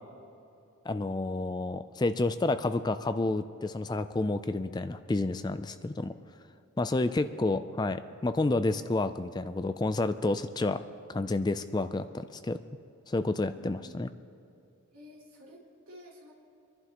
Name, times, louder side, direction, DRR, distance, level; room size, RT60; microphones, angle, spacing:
voice 1, 0.9-6.1 6.8-10.8 11.1-12.6 13.1-14.1, left 2 dB, 20° left, 11 dB, 0.3 m, -30 dB
voice 2, 7.0-7.3 13.4-14.0 14.9-16.3, equal, 90° right, -4 dB, 3.3 m, -52 dB
26.0 x 11.0 x 3.0 m, 2.7 s
head